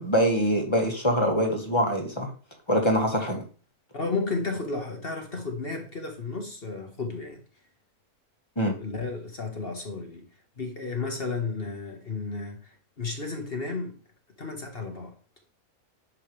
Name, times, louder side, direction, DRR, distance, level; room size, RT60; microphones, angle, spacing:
voice 1, 0.0-2.3 2.7-3.4 8.6-8.7, equal, 20° left, 1.8 m, -24 dB
voice 2, 3.9-7.4 8.8-10.3 10.6-14.0 14.4-15.2, left 3 dB, 40° left, 1.6 m, -33 dB
10.5 x 6.7 x 3.3 m
omnidirectional pair, 1.6 m